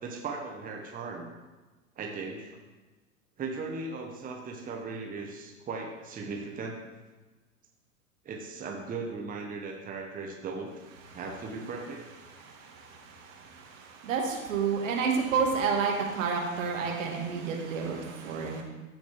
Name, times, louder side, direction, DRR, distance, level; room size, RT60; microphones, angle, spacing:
voice 1, 0.0-1.3 2.0-2.6 3.4-6.8 8.2-10.7 11.1-12.0, right 4 dB, 20° right, 1 dB, 1.1 m, -37 dB
voice 2, 12.3-18.6, right 5 dB, 65° right, 0 dB, 2.0 m, -30 dB
14.5 x 5.2 x 3.6 m, 1.2 s
figure-of-eight pair, 95°, 42 cm